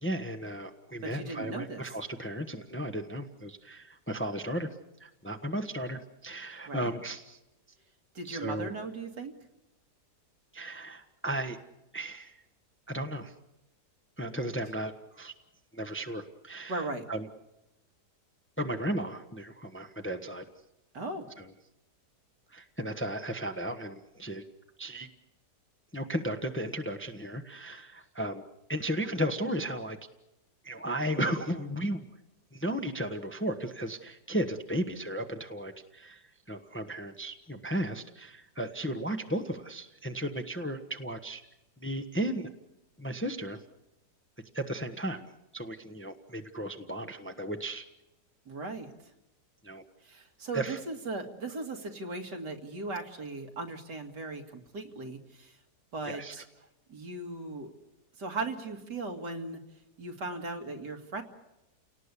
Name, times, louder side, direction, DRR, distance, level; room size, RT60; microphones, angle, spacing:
voice 1, 0.0-4.7 5.0-7.4 8.2-8.7 10.5-11.6 11.9-12.3 12.9-13.3 14.2-15.3 15.7-17.3 18.6-20.4 21.4-21.5 22.5-24.4 24.8-25.1 25.9-28.4 28.7-30.0 30.6-32.0 32.5-36.2 36.5-41.4 41.8-42.5 43.0-43.6 44.5-45.3 45.5-47.8 49.6-49.8 50.5-50.8 56.1-56.3, right 1 dB, 10° left, 6 dB, 1.0 m, -35 dB
voice 2, 1.0-1.8 6.7-6.9 8.1-9.3 14.3-14.5 16.7-17.1 20.9-21.3 48.5-48.9 50.0-55.5 55.9-56.4 56.9-57.7 58.2-59.6 60.0-61.2, right 3 dB, 80° right, 4 dB, 2.8 m, -37 dB
30.0 x 18.5 x 8.4 m, 0.96 s
omnidirectional pair, 1.8 m